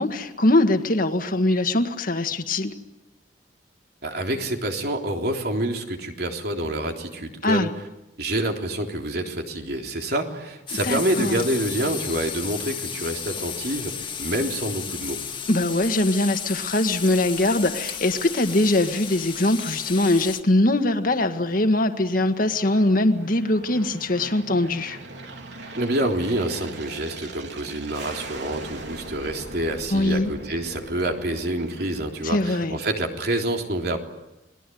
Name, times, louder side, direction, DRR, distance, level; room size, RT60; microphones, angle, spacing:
voice 1, 0.0-2.7 7.4-7.7 10.8-11.4 15.5-25.0 29.9-30.3 32.2-32.8, left 1 dB, 50° left, 7 dB, 1.8 m, -22 dB
voice 2, 4.0-7.7 8.2-15.2 25.7-34.0, right 1 dB, 60° right, 3 dB, 3.6 m, -27 dB
sound 1, 10.7-20.4, left 7 dB, 30° left, 2.0 m, -34 dB
Aircraft, 20.3-32.9, right 2 dB, 80° right, 3.5 m, -41 dB
29.0 x 21.0 x 9.4 m, 0.97 s
head